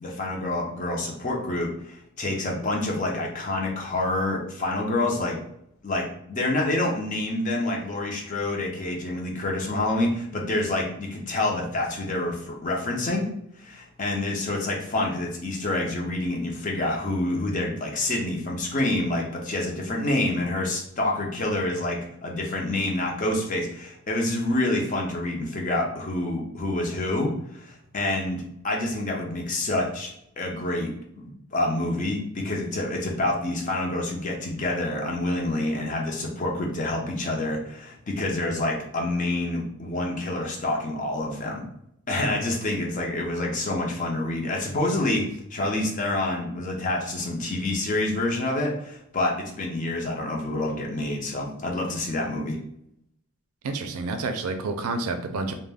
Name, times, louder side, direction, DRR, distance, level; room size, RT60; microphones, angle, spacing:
voice 1, 0.0-5.4 5.8-13.3 13.6-30.9 31.2-41.6 42.1-52.6, left 2 dB, 35° left, -1 dB, 0.5 m, -27 dB
voice 2, 53.6-55.5, right 3 dB, 80° right, 7 dB, 0.4 m, -29 dB
2.3 x 2.1 x 3.4 m, 0.73 s
head